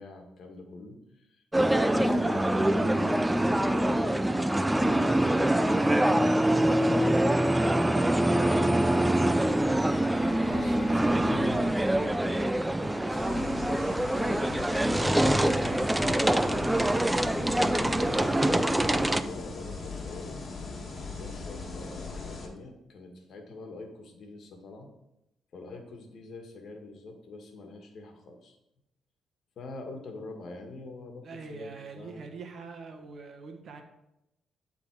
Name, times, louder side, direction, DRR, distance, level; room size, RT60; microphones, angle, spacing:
voice 1, 0.0-9.6 9.9-15.5 16.0-16.7 17.1-20.4 21.2-24.9 25.5-28.6 29.6-32.2, left 2 dB, 60° left, 4 dB, 1.5 m, -45 dB
sound 1, 1.5-19.2, right 1 dB, 10° right, 0.4 m, -25 dB
sound 2, 8.9-15.1, left 1 dB, 15° left, 1.4 m, -46 dB
sound 3, 13.1-22.5, left 3 dB, 40° left, 1.5 m, -39 dB
voice 2, 31.2-33.8, right 4 dB, 55° right, 4 dB, 1.3 m, -43 dB
11.5 x 3.8 x 4.6 m, 0.89 s
cardioid pair, 90°, 0 cm